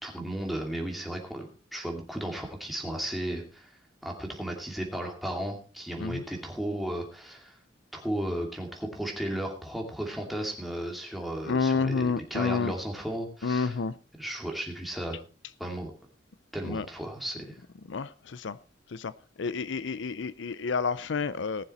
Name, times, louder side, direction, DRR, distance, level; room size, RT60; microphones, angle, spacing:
voice 1, 0.0-3.7 4.0-7.6 7.9-13.7 14.2-15.2 15.6-15.9 16.5-17.6, right 1 dB, ahead, 2.5 m, -34 dB
voice 2, 11.4-12.7 13.4-13.9 16.6-16.9 17.9-18.6 18.9-19.1 19.4-21.6, left 4 dB, 70° left, 0.5 m, -29 dB
19.0 x 7.0 x 4.2 m
head